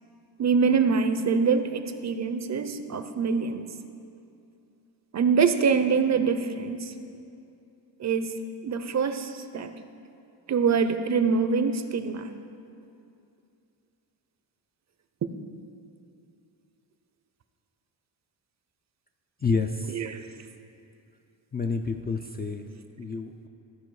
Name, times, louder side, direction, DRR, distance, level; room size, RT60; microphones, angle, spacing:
voice 1, 0.4-3.7 5.1-6.9 8.0-9.7 10.5-12.3 19.9-20.2, right 5 dB, 40° right, 9 dB, 0.5 m, -25 dB
voice 2, 19.4-19.9 21.5-22.7 23.0-23.5, left 4 dB, 25° left, 4 dB, 0.3 m, -29 dB
14.5 x 4.9 x 4.7 m, 2.6 s
cardioid pair, 110°, 46 cm